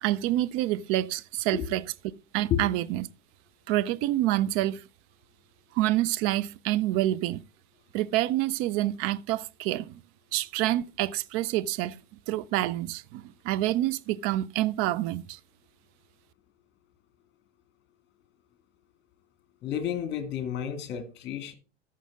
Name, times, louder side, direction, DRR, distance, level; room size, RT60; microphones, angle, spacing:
voice 1, 0.0-1.8 2.3-3.1 3.7-4.8 5.7-7.4 7.9-10.0 10.3-12.0 12.3-15.4, right 15 dB, 40° right, 0.5 m, -27 dB
voice 2, 19.6-21.5, left 9 dB, 30° left, 2.1 m, -31 dB
14.0 x 5.9 x 3.5 m
hypercardioid pair, 90°, 36 cm